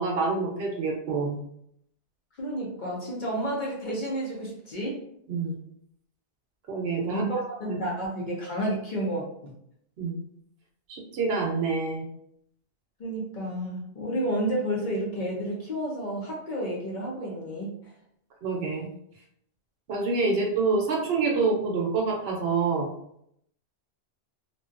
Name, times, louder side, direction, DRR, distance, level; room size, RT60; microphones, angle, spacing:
voice 1, 0.0-1.4 5.3-5.5 6.7-7.3 7.6-7.8 10.0-10.2 10.9-12.1 18.4-18.9 19.9-22.9, right 4 dB, 65° right, 0 dB, 0.8 m, -27 dB
voice 2, 2.4-5.0 7.1-9.5 13.0-17.9, right 1 dB, 50° left, -3 dB, 0.6 m, -31 dB
2.6 x 2.2 x 2.4 m, 0.73 s
omnidirectional pair, 1.2 m